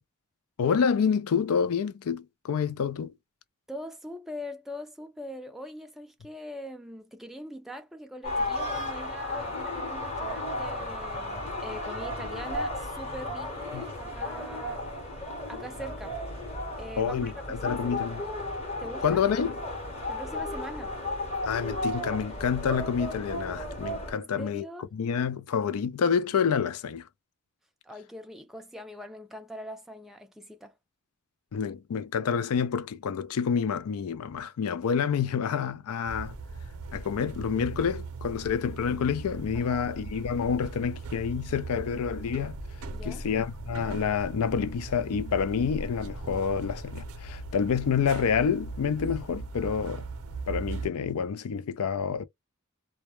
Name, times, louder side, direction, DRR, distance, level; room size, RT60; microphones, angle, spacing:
voice 1, 0.6-3.1 13.7-13.9 17.0-18.2 19.0-19.6 21.4-24.6 24.9-27.0 31.5-36.3 36.9-42.6 43.0-50.1 50.5-52.2, left 6 dB, 80° left, 0.4 m, -28 dB
voice 2, 3.7-14.9 15.5-16.2 16.8-18.2 18.8-19.2 20.1-21.0 24.1-24.9 27.8-30.7 39.5-39.9 42.9-43.3, equal, ahead, 0.3 m, -42 dB
sound 1, 8.2-24.1, left 1 dB, 30° left, 0.9 m, -34 dB
sound 2, 36.0-50.9, right 3 dB, 85° right, 0.6 m, -39 dB
2.1 x 2.1 x 2.9 m
head